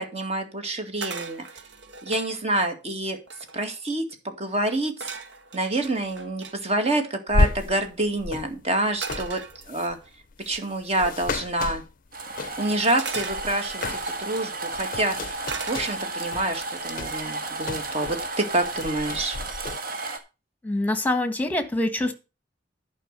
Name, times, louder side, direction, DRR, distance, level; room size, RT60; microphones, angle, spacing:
voice 1, 0.0-1.4 2.0-3.2 3.5-5.1 5.5-10.0 10.5-11.8 12.6-15.4 15.7-19.4, right 2 dB, 35° right, 6 dB, 2.1 m, -27 dB
sound 1, 1.0-2.3 2.9-3.0 3.2-3.8 5.0-6.6 9.0-10.1 11.0-11.3 13.0-14.2 15.5-16.3 16.7-17.1, right 5 dB, 70° right, 1.5 m, -38 dB
sound 2, 7.3-12.8 13.1-14.3 14.6-18.3 18.6-19.8, left 3 dB, 50° left, 0.6 m, -31 dB
sound 3, 12.1-20.2, right 2 dB, 55° right, 1.8 m, -33 dB
voice 2, 20.6-22.1, left 1 dB, 10° left, 9 dB, 1.5 m, -25 dB
11.0 x 5.5 x 6.7 m, 0.29 s
head